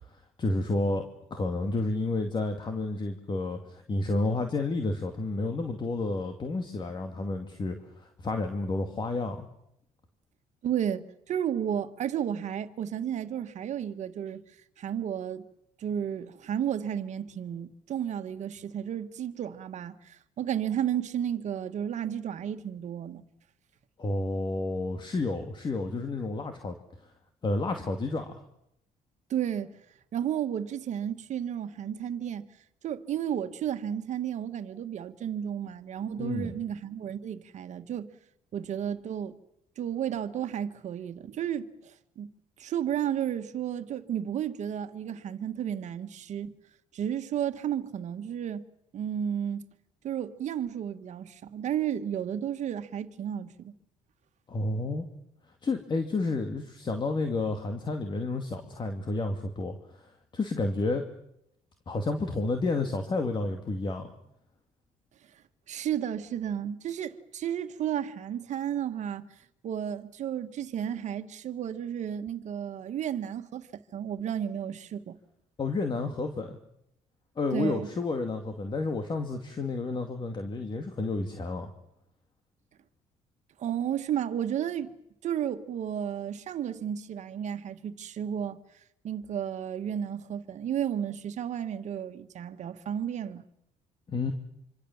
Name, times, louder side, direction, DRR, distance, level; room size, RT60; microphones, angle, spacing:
voice 1, 0.4-1.0 1.3-9.5 24.0-26.8 27.4-28.4 36.2-36.6 54.5-55.0 55.6-61.0 61.9-64.1 75.6-76.6 77.4-81.7 94.1-94.3, left 2 dB, 35° left, 2.4 m, -30 dB
voice 2, 10.6-14.4 14.8-15.4 15.8-23.2 29.3-29.8 30.1-32.4 32.8-38.1 38.5-39.4 39.8-42.3 42.6-46.5 46.9-48.6 48.9-49.6 50.0-53.7 65.7-69.3 69.6-73.7 73.9-75.2 77.5-77.9 83.6-84.9 85.2-88.6 89.0-93.4, right 9 dB, 60° right, 1.7 m, -32 dB
26.0 x 26.0 x 7.4 m
cardioid pair, 100°, 14 cm